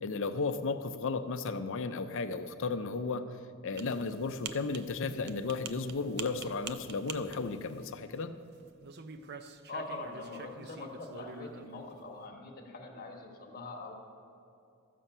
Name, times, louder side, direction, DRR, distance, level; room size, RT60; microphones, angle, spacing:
voice 1, 0.0-8.4, left 4 dB, 60° left, 10 dB, 0.6 m, -34 dB
sound 1, 3.7-8.4 8.7-11.8, right 6 dB, 50° right, 0.5 m, -47 dB
voice 2, 9.7-13.9, left 2 dB, 45° left, 0 dB, 1.4 m, -43 dB
13.5 x 7.5 x 5.5 m, 2.6 s
head